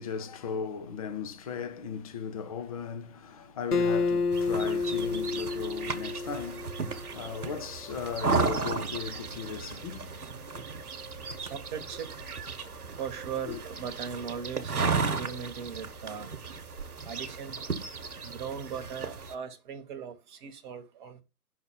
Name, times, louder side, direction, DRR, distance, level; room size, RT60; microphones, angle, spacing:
voice 1, 0.0-10.3 13.5-13.6, left 6 dB, 25° left, 0.7 m, -37 dB
Acoustic guitar, 3.7-7.1, left 4 dB, 80° left, 0.8 m, -29 dB
sound 1, 4.3-19.3, right 4 dB, 75° right, 1.3 m, -35 dB
voice 2, 11.4-12.1 12.9-16.3 17.0-17.6 18.2-21.2, right 7 dB, 30° right, 1.2 m, -39 dB
5.8 x 4.2 x 5.7 m
figure-of-eight pair, 125°, 45 cm